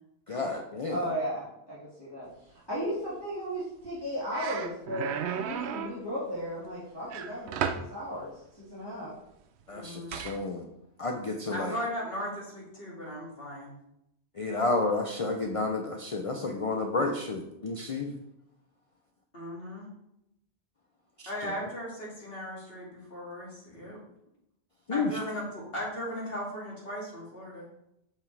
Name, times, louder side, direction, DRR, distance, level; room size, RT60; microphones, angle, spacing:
voice 1, 0.3-1.0 9.7-10.7 11.0-11.8 14.4-18.1 21.4-21.5 24.9-25.1, left 3 dB, 40° left, 2 dB, 0.5 m, -31 dB
voice 2, 0.9-2.3 2.7-5.1 5.3-9.1, equal, 20° left, -12 dB, 2.3 m, -35 dB
sound 1, 3.8-4.0 4.3-6.0 7.1-7.9 10.1-10.4, right 7 dB, 80° right, 0.8 m, -33 dB
voice 3, 9.7-10.2 11.5-13.7 19.3-19.9 21.3-24.0 24.9-27.7, equal, 60° left, -5 dB, 2.7 m, -37 dB
7.0 x 5.6 x 3.3 m, 0.82 s
omnidirectional pair, 1.1 m